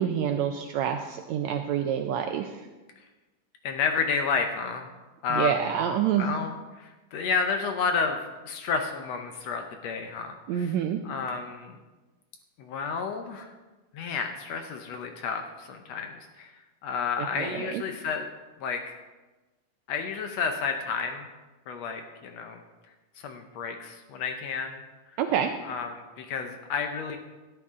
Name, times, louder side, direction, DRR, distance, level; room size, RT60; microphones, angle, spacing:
voice 1, 0.0-2.7 5.3-6.4 10.5-11.0 17.2-17.8 25.2-25.5, right 9 dB, 80° right, 6 dB, 1.6 m, -27 dB
voice 2, 3.6-4.9 5.2-5.8 6.1-10.7 11.0-11.8 12.6-13.5 13.9-16.5 16.8-18.3 18.6-19.0 19.9-21.3 21.7-22.6 23.2-24.8 25.6-27.2, left 5 dB, 70° left, 5 dB, 1.6 m, -31 dB
13.0 x 11.0 x 3.7 m, 1.2 s
omnidirectional pair, 3.7 m